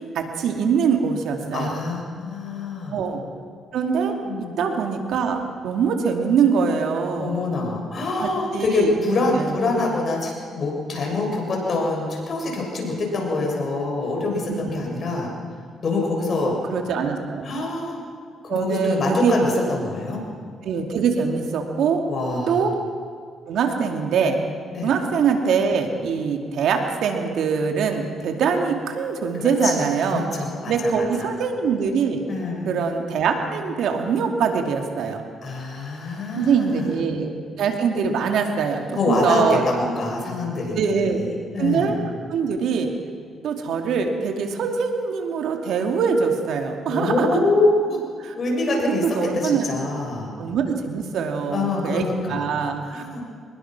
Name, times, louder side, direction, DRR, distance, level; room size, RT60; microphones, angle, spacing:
voice 1, 0.1-1.7 2.9-3.2 3.7-4.1 4.6-7.4 8.2-9.5 14.5-14.8 16.5-17.4 18.5-19.4 20.6-22.0 22.5-22.7 23.5-24.4 24.8-30.2 30.7-32.2 32.6-35.2 36.4-39.6 40.7-41.2 41.6-41.9 42.3-42.9 43.4-47.4 48.2-48.3 48.7-49.7 50.4-52.0 52.3-53.0, right 6 dB, 75° right, 3 dB, 2.7 m, -23 dB
voice 2, 1.5-3.0 4.2-4.5 7.2-15.3 15.8-16.6 17.4-18.0 18.4-20.2 22.1-22.6 24.7-24.9 29.3-29.7 30.1-31.3 32.3-32.8 35.4-36.9 38.9-42.0 46.9-48.0 48.3-50.3 51.5-52.5 52.9-53.2, left 2 dB, 50° left, -1 dB, 6.7 m, -25 dB
24.0 x 21.0 x 6.2 m, 2.1 s
cardioid pair, 90°, 0 cm